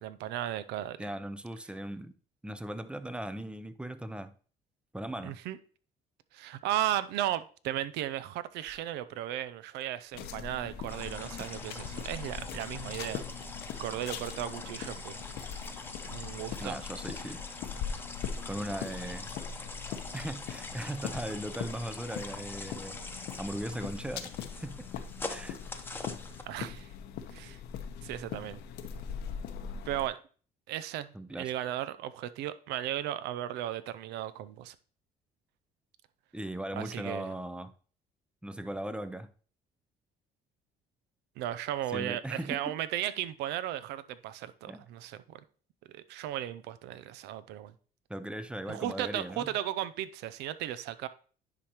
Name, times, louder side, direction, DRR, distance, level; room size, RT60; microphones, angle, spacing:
voice 1, 0.0-1.0 5.2-5.6 6.3-13.2 13.8-15.2 16.1-16.8 26.5-26.9 27.3-27.6 28.0-28.6 29.9-30.2 30.7-34.7 36.7-37.3 41.4-45.4 45.9-47.7 48.7-51.1, right 12 dB, 85° right, 0.5 m, -35 dB
voice 2, 1.0-2.1 2.4-4.3 4.9-5.4 16.6-17.4 18.4-19.3 20.1-23.0 23.4-24.9 25.3-25.6 31.1-31.5 36.3-37.7 38.4-39.3 41.9-42.8 44.7-44.9 48.1-49.6, right 1 dB, 5° right, 0.5 m, -38 dB
sound 1, 8.7-8.8 9.1-9.7 10.0-14.0, right 2 dB, 40° right, 2.1 m, -54 dB
sound 2, 10.1-30.1, left 7 dB, 75° left, 0.8 m, -41 dB
sound 3, 10.9-26.4, left 3 dB, 10° left, 0.9 m, -44 dB
10.0 x 5.0 x 2.9 m
cardioid pair, 110°, 17 cm